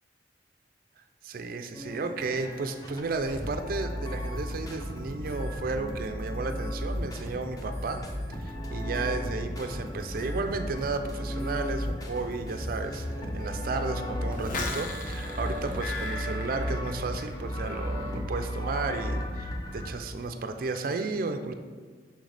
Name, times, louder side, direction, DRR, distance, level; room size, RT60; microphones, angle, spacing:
voice 1, 1.2-8.0 8.4-21.5, right 3 dB, 55° right, 7 dB, 0.4 m, -33 dB
sound 1, 1.7-19.9, equal, 20° left, 0.7 m, -34 dB
sound 2, 14.3-17.4 17.7-18.1, left 2 dB, 50° left, 0.8 m, -36 dB
6.3 x 5.8 x 3.3 m, 1.5 s
head